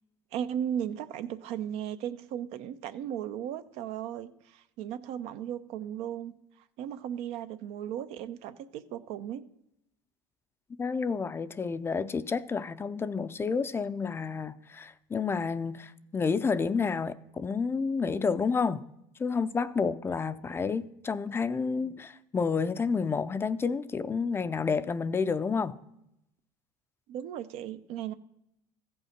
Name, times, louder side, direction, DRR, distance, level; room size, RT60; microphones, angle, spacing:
voice 1, 0.3-6.3 6.8-9.4 27.1-28.1, right 10 dB, 70° right, 0.6 m, -36 dB
voice 2, 10.8-18.8 19.2-25.8, left 5 dB, 20° left, 0.4 m, -30 dB
14.5 x 5.4 x 5.8 m
supercardioid pair, 115°, 11 cm